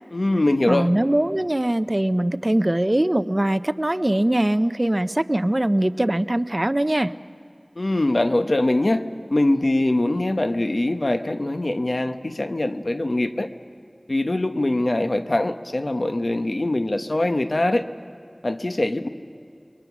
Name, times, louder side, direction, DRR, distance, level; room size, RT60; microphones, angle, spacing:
voice 1, 0.1-0.9 7.8-9.0 9.3-13.5 14.1-17.9 18.4-19.1, left 1 dB, 65° left, 1.0 m, -22 dB
voice 2, 0.7-7.1, right 1 dB, 35° right, 0.6 m, -21 dB
30.0 x 22.5 x 6.0 m
wide cardioid pair, 40°, 0 cm